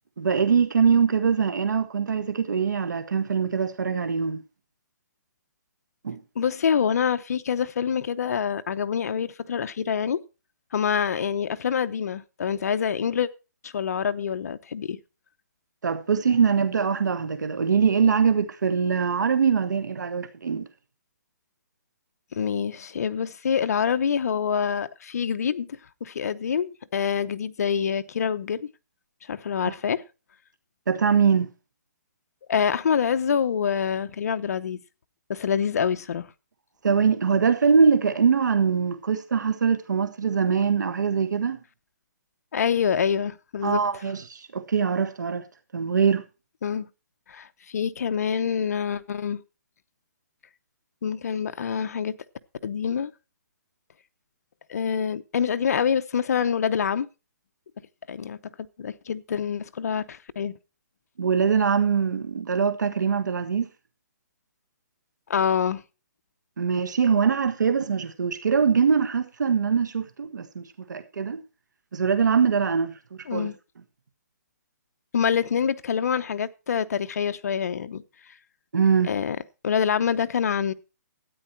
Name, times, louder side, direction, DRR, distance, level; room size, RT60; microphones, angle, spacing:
voice 1, 0.2-4.4 6.0-6.2 15.8-20.7 29.7-29.8 30.9-31.5 36.8-41.6 43.6-45.4 45.7-46.2 61.2-63.7 66.6-71.4 71.9-72.9 73.3-73.5 78.7-79.1, right 6 dB, 85° right, 1.5 m, -23 dB
voice 2, 6.4-10.2 10.7-13.3 13.6-15.0 22.3-28.7 29.3-30.0 32.5-34.8 35.3-36.3 42.5-43.8 46.6-46.9 47.3-49.4 51.0-52.2 52.6-53.1 54.7-57.1 58.1-58.4 58.8-60.5 65.3-65.8 73.3-73.5 75.1-78.0 79.1-79.4 79.6-80.7, left 7 dB, 60° left, 0.8 m, -26 dB
13.0 x 9.4 x 4.5 m
hypercardioid pair, 165°, 10 cm